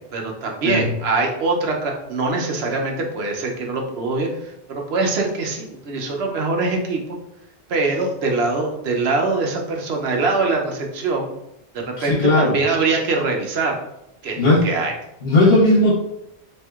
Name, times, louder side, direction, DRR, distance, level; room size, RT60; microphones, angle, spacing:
voice 1, 0.1-4.3 4.7-7.2 7.7-11.3 11.7-13.8 14.2-14.9, right 3 dB, 85° right, 1 dB, 1.0 m, -23 dB
voice 2, 12.0-12.6 14.4-14.7 15.2-15.9, left 2 dB, 70° left, -6 dB, 1.2 m, -16 dB
4.3 x 2.7 x 2.3 m, 0.81 s
omnidirectional pair, 1.0 m